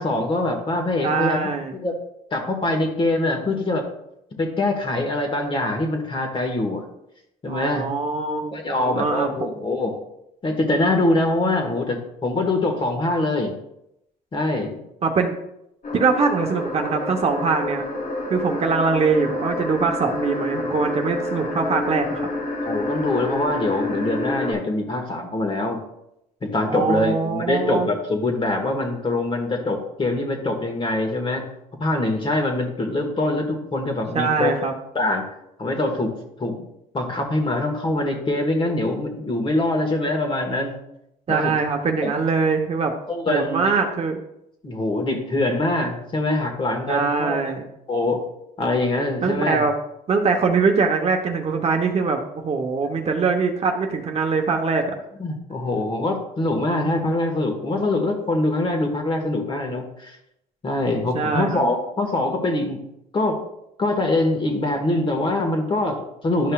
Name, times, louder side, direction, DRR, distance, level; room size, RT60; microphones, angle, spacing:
voice 1, 0.0-1.4 1.8-1.9 2.3-3.8 4.3-6.8 7.4-7.9 8.5-9.9 10.4-13.5 14.3-14.8 22.6-25.8 26.4-31.4 31.8-34.7 34.9-35.2 35.6-36.1 36.4-36.5 36.9-40.7 41.3-41.5 42.0-42.1 43.1-43.7 44.6-47.4 47.9-48.2 48.6-49.6 55.2-60.2 60.6-62.8 63.1-63.4 63.8-66.5, left 2 dB, 30° left, 3 dB, 1.5 m, -23 dB
voice 2, 1.0-1.7 7.5-9.5 15.0-15.3 15.9-17.8 18.3-22.3 26.7-27.9 34.1-34.7 41.3-42.9 43.3-44.2 46.9-47.6 49.2-49.7 50.1-54.9 61.1-61.6, right 4 dB, 40° right, 3 dB, 0.9 m, -22 dB
sound 1, 15.8-24.5, left 2 dB, 55° left, 2.1 m, -28 dB
11.5 x 5.4 x 2.4 m, 0.81 s
cardioid pair, 110°, 17 cm